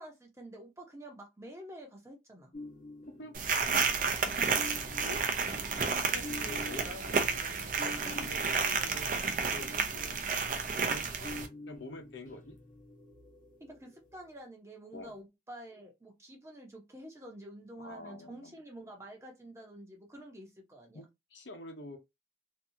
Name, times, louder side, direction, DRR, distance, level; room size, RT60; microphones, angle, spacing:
voice 1, 0.0-2.5 13.6-21.0, right 1 dB, 15° right, 0.7 m, -49 dB
sound 1, 2.5-14.2, left 2 dB, 45° left, 0.8 m, -48 dB
voice 2, 3.2-4.0 4.6-5.3 5.7-10.3 10.7-11.4 11.7-12.6 14.9-15.1 17.8-18.5 20.9-22.0, left 2 dB, 80° left, 0.8 m, -47 dB
sound 2, 3.3-11.5, right 5 dB, 45° right, 0.5 m, -31 dB
2.7 x 2.4 x 2.7 m
head